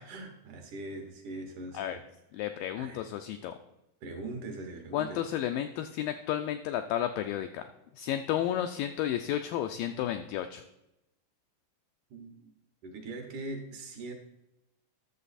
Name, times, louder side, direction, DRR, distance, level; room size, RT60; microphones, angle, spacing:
voice 1, 0.0-2.0 2.8-3.0 4.0-5.2 12.1-12.5 12.8-14.1, right 2 dB, 65° right, 3 dB, 2.5 m, -41 dB
voice 2, 2.3-3.5 4.9-7.6 8.0-10.6, left 11 dB, 85° left, 7 dB, 2.0 m, -32 dB
11.0 x 7.1 x 4.1 m, 0.90 s
omnidirectional pair, 4.5 m